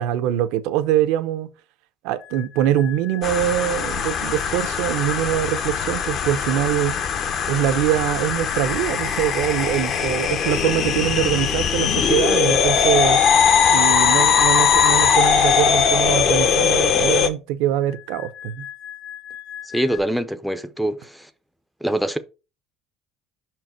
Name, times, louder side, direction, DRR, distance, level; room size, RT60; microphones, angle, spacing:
voice 1, 0.0-1.5 2.0-7.0 7.5-13.2 13.7-18.7, right 12 dB, 80° right, 0.7 m, -23 dB
sound 1, 2.2-15.9 17.8-20.0, left 11 dB, 85° left, 1.4 m, -38 dB
sound 2, 3.2-17.3, left 7 dB, 45° left, 0.8 m, -20 dB
voice 2, 19.6-21.3 21.8-22.2, right 1 dB, ahead, 0.5 m, -24 dB
5.8 x 4.6 x 4.4 m
cardioid pair, 160°, 0 cm